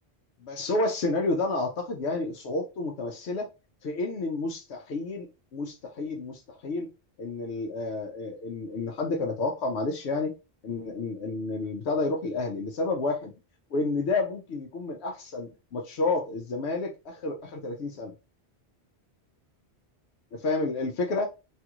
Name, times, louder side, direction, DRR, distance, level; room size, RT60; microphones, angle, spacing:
voice 1, 0.4-3.5 3.8-6.9 7.2-10.3 10.6-13.3 13.7-18.1 20.3-21.3, left 3 dB, 85° left, 2 dB, 0.9 m, -30 dB
3.3 x 2.4 x 2.9 m, 0.28 s
omnidirectional pair, 1.1 m